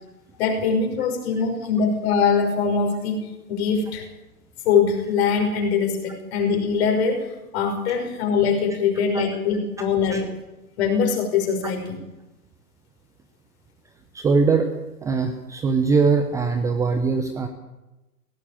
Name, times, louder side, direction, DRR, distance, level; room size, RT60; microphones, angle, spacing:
voice 1, 0.3-3.2 3.5-4.1 4.6-10.3 10.8-11.9, left 6 dB, 40° left, 4 dB, 5.7 m, -22 dB
voice 2, 14.1-14.7 15.0-17.5, right 4 dB, 5° right, 7 dB, 0.7 m, -21 dB
17.5 x 17.0 x 8.7 m, 1.0 s
hypercardioid pair, 130°, 47 cm